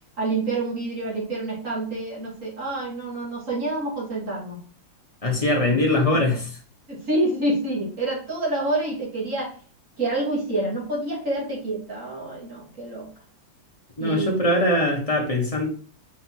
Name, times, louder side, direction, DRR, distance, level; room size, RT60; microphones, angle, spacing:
voice 1, 0.2-4.6 5.7-5.8 6.1-6.2 6.9-9.5 10.0-13.1 14.0-14.5, right 2 dB, 40° right, -4 dB, 2.9 m, -27 dB
voice 2, 5.2-6.5 14.0-15.7, left 1 dB, 20° left, 0 dB, 1.4 m, -22 dB
5.6 x 4.3 x 4.6 m, 0.43 s
omnidirectional pair, 2.1 m